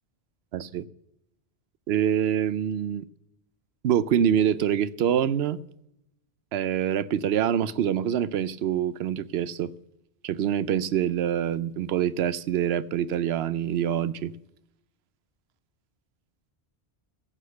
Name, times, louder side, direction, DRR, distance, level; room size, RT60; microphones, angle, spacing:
voice 1, 0.5-0.8 1.9-3.0 3.8-5.6 6.5-9.7 10.2-14.3, right 9 dB, 75° right, 0.8 m, -25 dB
12.5 x 8.5 x 6.7 m
omnidirectional pair, 1.1 m